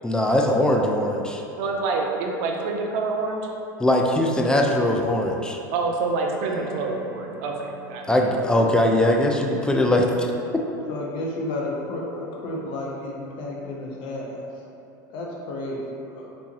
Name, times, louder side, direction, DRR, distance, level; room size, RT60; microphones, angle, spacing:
voice 1, 0.0-1.4 3.8-5.6 8.1-10.3 10.5-10.6, left 1 dB, 10° left, 1 dB, 0.4 m, -21 dB
voice 2, 1.6-3.5 5.7-8.1, right 3 dB, 65° right, 1 dB, 0.5 m, -27 dB
sound 1, 5.4-5.8 6.4-10.1, right 2 dB, 70° left, 1.2 m, -44 dB
voice 3, 10.9-14.5 15.1-16.3, left 1 dB, 50° left, -2 dB, 0.8 m, -32 dB
3.4 x 3.1 x 2.9 m, 2.7 s
hypercardioid pair, 90°, 10 cm